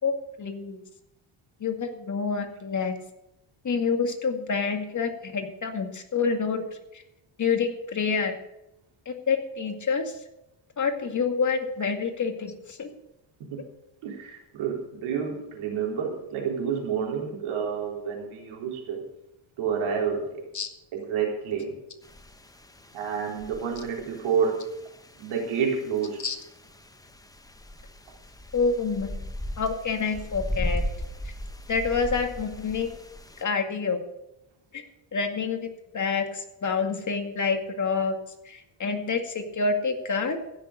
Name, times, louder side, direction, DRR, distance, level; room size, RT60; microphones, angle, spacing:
voice 1, 0.4-0.8 1.6-3.0 3.6-6.6 6.9-7.0 7.4-8.3 9.1-10.2 10.8-12.9 20.5-20.7 26.2-26.4 28.5-30.8 31.7-33.0 33.4-34.0 34.7-34.8 35.1-35.7 35.9-38.1 38.5-40.4, left 5 dB, 40° left, 4 dB, 2.2 m, -27 dB
voice 2, 14.0-19.0 19.6-20.4 20.9-21.8 22.9-24.6 25.2-26.2, right 6 dB, 85° right, -1 dB, 4.0 m, -29 dB
sound 1, 22.0-33.4, left 1 dB, 10° left, 0.8 m, -37 dB
15.5 x 6.9 x 6.7 m, 0.85 s
cardioid pair, 105°, 47 cm